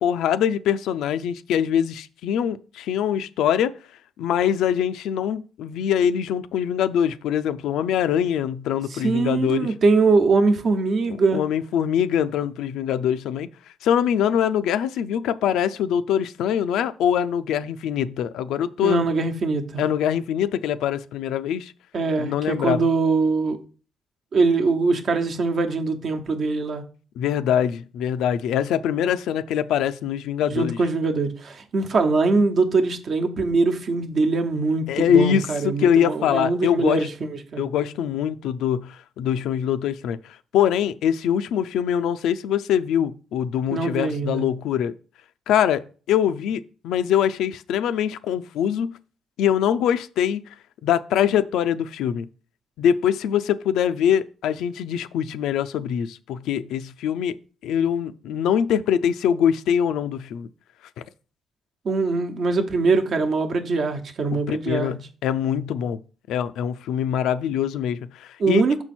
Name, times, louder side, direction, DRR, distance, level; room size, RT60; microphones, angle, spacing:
voice 1, 0.0-3.8 4.2-9.7 11.3-13.5 13.8-19.0 19.8-21.7 22.2-22.8 27.2-30.8 34.9-37.1 37.6-40.2 40.5-44.9 45.5-49.0 49.4-50.4 50.8-52.3 52.8-57.4 57.6-60.5 61.0-61.1 64.3-66.0 66.3-68.6, left 9 dB, 85° left, 0.4 m, -23 dB
voice 2, 8.9-11.4 18.8-19.8 21.9-23.6 24.3-26.8 30.4-37.6 43.7-44.4 61.8-65.0 68.4-68.8, right 3 dB, 55° right, 1.0 m, -22 dB
6.1 x 4.4 x 4.3 m
cardioid pair, 90°, 0 cm